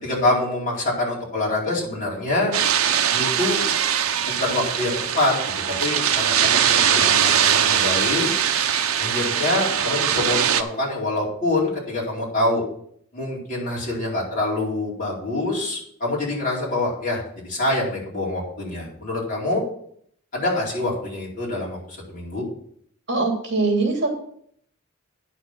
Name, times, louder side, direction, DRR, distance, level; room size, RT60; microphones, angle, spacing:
voice 1, 0.0-2.6 3.1-3.6 4.4-5.3 5.7-8.3 9.0-12.6 13.1-19.6 20.3-22.4, left 2 dB, 40° left, -5 dB, 4.5 m, -25 dB
sound 1, 2.5-10.6, right 9 dB, 80° right, 0.7 m, -21 dB
voice 2, 23.1-24.1, right 3 dB, 55° right, 1 dB, 3.0 m, -22 dB
9.7 x 6.5 x 6.1 m, 0.65 s
head